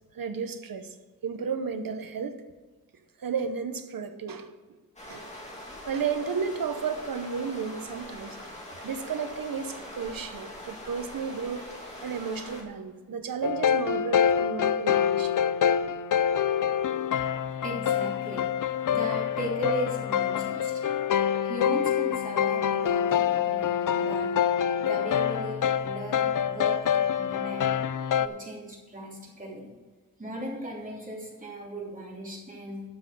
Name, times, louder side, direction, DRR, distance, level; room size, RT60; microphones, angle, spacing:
voice 1, 0.1-0.9 1.2-2.4 3.2-4.5 5.1-5.3 5.9-8.4 8.8-11.7 12.0-15.3, right 6 dB, 75° right, 9 dB, 1.0 m, -33 dB
sound 1, 5.0-12.6, left 1 dB, 20° left, 2.5 m, -43 dB
sound 2, 13.4-28.3, left 8 dB, 65° left, 0.5 m, -26 dB
voice 2, 17.6-18.5 18.9-20.8 21.4-24.4 24.8-27.7 28.2-29.7 30.2-32.8, right 1 dB, 25° right, -4 dB, 3.0 m, -37 dB
12.0 x 6.2 x 5.3 m, 1.4 s
wide cardioid pair, 130°, 34 cm